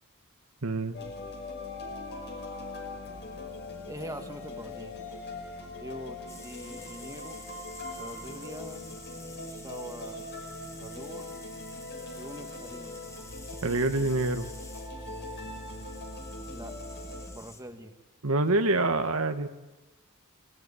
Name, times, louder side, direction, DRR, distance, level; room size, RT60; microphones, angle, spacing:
voice 1, 0.6-1.0 13.6-14.5 18.2-19.5, right 2 dB, 75° right, 7 dB, 1.5 m, -26 dB
sound 1, 0.9-17.3, left 2 dB, 50° left, 5.7 m, -41 dB
voice 2, 3.9-4.9 5.8-7.4 8.0-8.8 9.5-10.3 10.8-11.3 12.2-13.1 16.5-16.7 17.3-18.0, right 1 dB, 15° right, 5 dB, 1.7 m, -43 dB
sound 2, 6.3-17.6, left 2 dB, 15° left, 2.3 m, -50 dB
27.0 x 18.5 x 9.8 m, 1.1 s
head